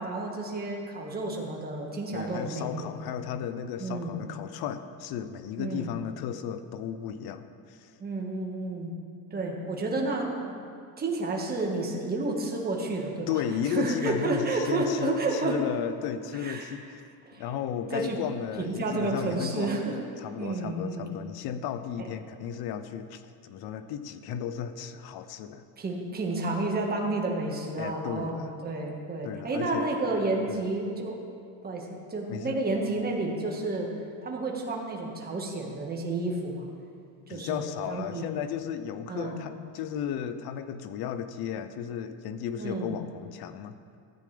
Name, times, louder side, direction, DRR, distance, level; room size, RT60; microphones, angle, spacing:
voice 1, 0.0-3.2 3.8-4.2 5.6-5.9 8.0-8.9 9.3-10.5 11.0-15.6 16.4-16.7 17.3-17.4 17.9-18.2 18.6-20.0 20.4-21.1 22.0-22.1 25.8-31.2 31.6-33.9 34.2-36.7 37.3-38.3 39.1-39.4 42.6-43.0, right 2 dB, 20° right, 0 dB, 1.6 m, -31 dB
voice 2, 2.1-7.9 13.3-17.0 17.4-19.7 20.2-25.6 27.8-28.5 29.2-29.9 30.5-30.7 32.3-32.6 37.3-43.8, left 9 dB, 60° left, 11 dB, 0.7 m, -34 dB
14.5 x 9.1 x 3.4 m, 2.3 s
cardioid pair, 115°, 43 cm